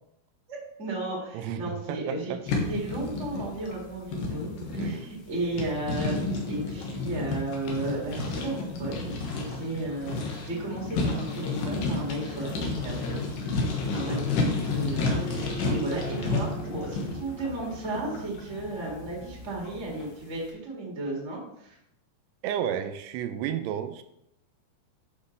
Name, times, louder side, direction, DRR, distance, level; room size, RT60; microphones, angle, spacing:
voice 1, 0.5-6.2 6.5-21.7, right 2 dB, 30° right, -3 dB, 1.3 m, -34 dB
voice 2, 1.3-2.4 4.7-5.1 22.4-24.0, right 9 dB, 85° right, 10 dB, 2.6 m, -32 dB
sound 1, 2.5-20.1, left 3 dB, 65° left, 2.5 m, -31 dB
sound 2, 10.5-20.2, left 1 dB, 85° left, 1.0 m, -44 dB
11.5 x 5.8 x 3.2 m, 0.79 s
omnidirectional pair, 5.0 m